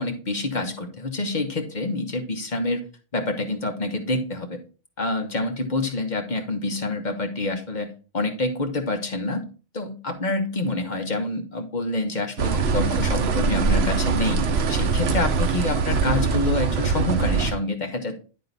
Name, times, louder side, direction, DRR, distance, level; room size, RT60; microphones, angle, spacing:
voice 1, 0.0-2.8 3.1-4.6 5.0-9.4 9.7-18.1, left 2 dB, 40° left, 4 dB, 1.2 m, -27 dB
sound 1, 12.4-17.5, right 5 dB, 65° right, 1.0 m, -22 dB
10.5 x 3.8 x 4.0 m, 0.35 s
omnidirectional pair, 1.2 m